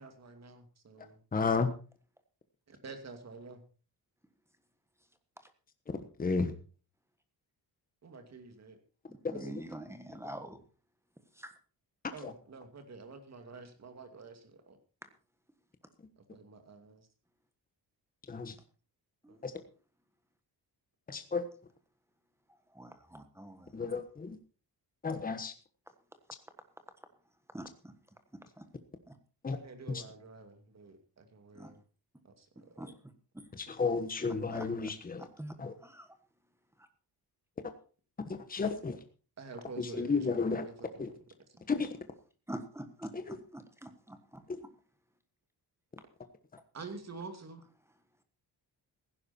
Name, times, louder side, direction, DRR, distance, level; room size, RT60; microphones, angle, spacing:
voice 1, 0.0-1.6 2.7-3.6 8.0-8.8 12.1-14.8 16.3-17.1 19.3-19.4 29.5-31.8 32.2-32.9 33.7-33.8 39.4-40.4 40.6-41.1 46.7-47.6, right 3 dB, 40° right, 6 dB, 2.5 m, -48 dB
voice 2, 1.3-1.7 6.2-6.5 9.3-9.4 12.2-12.3 18.3-18.6 19.4-19.5 21.1-21.5 23.7-24.4 25.0-25.5 29.4-29.6 29.9-30.0 33.5-35.3 35.6-35.7 38.3-39.0 39.8-40.7 41.0-41.1 41.7-41.9 43.1-43.4 44.5-44.6, left 4 dB, 20° left, 8 dB, 1.2 m, -32 dB
voice 3, 9.1-10.6 11.4-11.5 19.2-19.4 22.7-23.7 27.5-27.9 28.6-28.7 29.1-29.2 31.5-31.7 32.8-32.9 33.3-33.4 34.2-34.9 35.2-35.6 35.8-36.1 36.8-36.9 42.5-44.4, right 1 dB, 5° right, 8 dB, 1.4 m, -45 dB
15.5 x 11.0 x 4.3 m, 0.37 s
wide cardioid pair, 170°, 40 cm